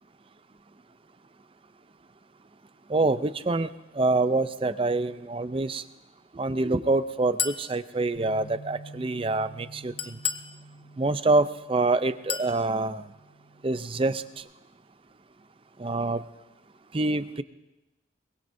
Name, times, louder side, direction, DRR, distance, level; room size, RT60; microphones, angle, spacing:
voice 1, 2.9-5.8 6.3-10.2 11.0-13.0 13.6-14.2 15.8-16.2 16.9-17.4, right 2 dB, 30° right, 13 dB, 0.5 m, -26 dB
Chink clink, 7.4-7.7 10.0-10.5 12.3-12.6, left 8 dB, 30° left, 0.7 m, -30 dB
Bass guitar, 8.1-14.4, right 2 dB, 75° left, 2.5 m, -49 dB
23.5 x 22.5 x 2.7 m, 0.99 s
head